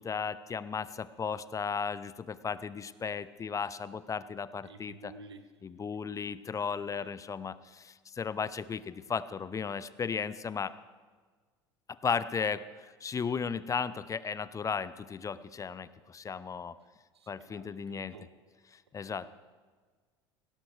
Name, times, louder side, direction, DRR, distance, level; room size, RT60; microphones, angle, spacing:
voice 1, 0.0-5.1 5.6-10.8 11.9-16.8 17.3-18.1 18.7-19.3, left 6 dB, 25° left, 16 dB, 0.6 m, -35 dB
voice 2, 4.6-5.5 6.1-6.4 6.8-7.1 17.1-18.3 19.0-19.1, right 4 dB, 85° right, 11 dB, 1.0 m, -53 dB
17.5 x 17.0 x 3.4 m, 1.5 s
hypercardioid pair, 70°, 13 cm